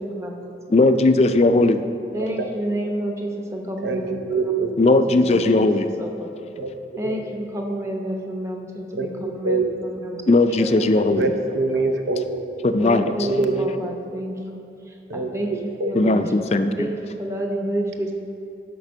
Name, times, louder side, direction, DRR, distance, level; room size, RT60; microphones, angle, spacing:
voice 1, 0.0-0.8 1.2-1.3 2.1-4.5 5.1-5.5 6.0-6.3 7.0-10.3 10.6-11.0 12.8-14.6 15.1-15.5 15.8-18.1, right 1 dB, 15° right, 1 dB, 0.8 m, -30 dB
voice 2, 0.7-1.7 4.8-5.8 10.3-11.2 12.7-13.0 16.0-16.7, left 2 dB, 35° left, 9 dB, 0.4 m, -17 dB
voice 3, 3.8-4.7 6.6-6.7 7.0-7.2 8.9-9.1 9.4-9.7 11.1-12.4 13.2-13.7 15.1-15.3 15.8-15.9, right 3 dB, 80° right, 5 dB, 0.7 m, -23 dB
11.0 x 5.2 x 6.2 m, 2.7 s
head